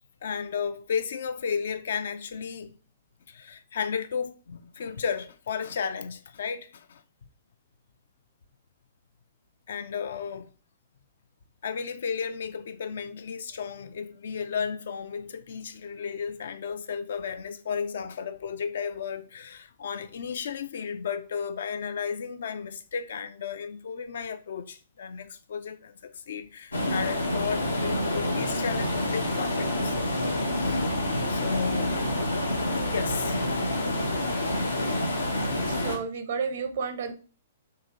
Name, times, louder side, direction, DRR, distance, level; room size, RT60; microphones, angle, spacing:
voice 1, 0.2-2.7 3.3-7.0 9.7-10.5 11.6-29.9 30.5-30.9 31.3-31.9 32.9-35.7, left 6 dB, 60° left, 0.3 m, -34 dB
sound 1, 26.7-36.0, left 1 dB, 80° left, 0.7 m, -27 dB
voice 2, 35.5-37.1, right 5 dB, 55° right, 0.6 m, -32 dB
3.8 x 2.7 x 2.8 m
figure-of-eight pair, 115°, 0 cm